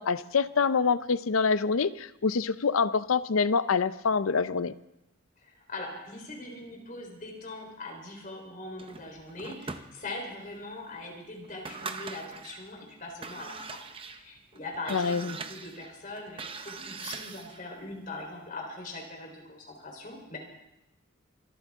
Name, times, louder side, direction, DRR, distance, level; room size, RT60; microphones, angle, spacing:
voice 1, 0.0-4.7 14.9-15.4, left 5 dB, 80° left, 15 dB, 0.6 m, -26 dB
voice 2, 5.4-13.8 14.1-20.4, left 2 dB, 40° left, 0 dB, 3.8 m, -41 dB
sound 1, 8.8-10.4 10.9-11.0 11.4-12.7 13.1-17.7, right 4 dB, 25° right, 0.7 m, -42 dB
25.0 x 13.5 x 3.6 m, 0.90 s
head